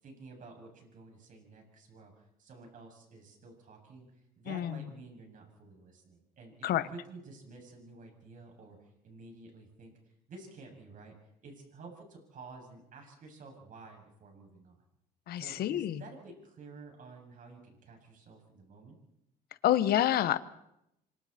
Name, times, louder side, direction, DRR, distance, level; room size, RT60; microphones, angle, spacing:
voice 1, 0.0-4.1 4.4-8.8 9.0-9.9 10.3-11.1 11.4-14.8 15.4-19.0, right 3 dB, 50° right, 2 dB, 7.5 m, -51 dB
voice 2, 4.5-4.8 6.6-6.9 15.3-16.0 19.6-20.4, left 12 dB, 65° left, 14 dB, 1.3 m, -28 dB
27.5 x 25.0 x 4.4 m, 0.80 s
cardioid pair, 110°, 17 cm